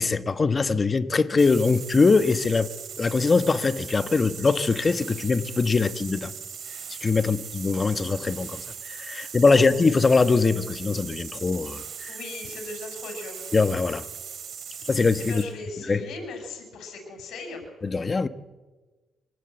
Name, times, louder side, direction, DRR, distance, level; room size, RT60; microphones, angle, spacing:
voice 1, 0.0-2.7 3.0-6.3 6.9-12.2 13.5-14.0 14.9-15.4 15.9-16.0 17.8-18.3, left 4 dB, 30° left, 1.1 m, -22 dB
sound 1, 1.4-15.5, right 7 dB, 60° right, 3.7 m, -39 dB
voice 2, 9.2-9.6 12.1-13.5 15.2-17.6, left 3 dB, 80° left, 6.5 m, -38 dB
25.5 x 18.5 x 8.1 m
cardioid pair, 100°, 0 cm